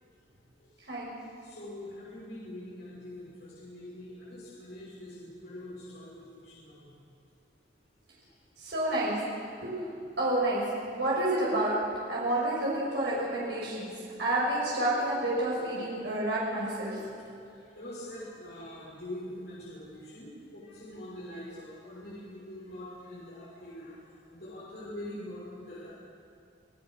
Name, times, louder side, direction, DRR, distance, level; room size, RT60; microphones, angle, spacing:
voice 1, 1.4-6.9 8.6-8.7 16.9-17.1 17.7-24.0 24.3-25.9, left 1 dB, 65° left, -8 dB, 6.1 m, -44 dB
voice 2, 8.6-9.1 9.6-9.7 10.2-10.6 10.9-11.7 12.1-13.9 14.2-16.9, right 1 dB, 70° right, -6 dB, 6.4 m, -29 dB
29.5 x 18.0 x 6.5 m, 2.5 s
head